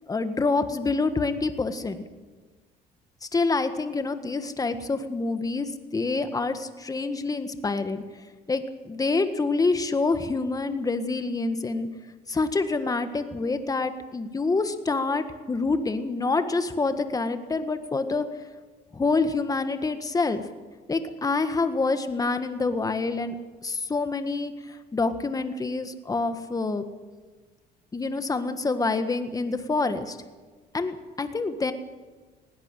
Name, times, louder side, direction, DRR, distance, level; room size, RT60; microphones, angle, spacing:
voice 1, 0.1-2.1 3.2-8.0 8.5-11.9 12.3-18.2 18.9-20.4 20.9-23.4 23.6-26.8 27.9-30.2 30.7-31.7, left 3 dB, 20° left, 9 dB, 1.6 m, -27 dB
20.0 x 17.0 x 9.0 m, 1.3 s
cardioid pair, 110°, 17 cm